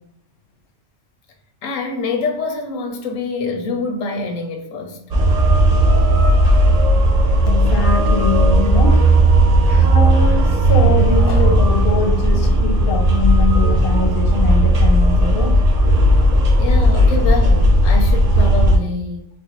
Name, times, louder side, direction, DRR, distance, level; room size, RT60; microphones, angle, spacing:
voice 1, 1.6-5.0 16.6-19.3, left 3 dB, 90° left, 5 dB, 1.0 m, -25 dB
sound 1, 5.1-18.8, right 1 dB, 50° right, 0.4 m, -14 dB
voice 2, 7.5-9.0 9.7-15.6, left 4 dB, 50° left, 2 dB, 0.8 m, -23 dB
4.2 x 2.2 x 2.9 m, 0.75 s
omnidirectional pair, 1.3 m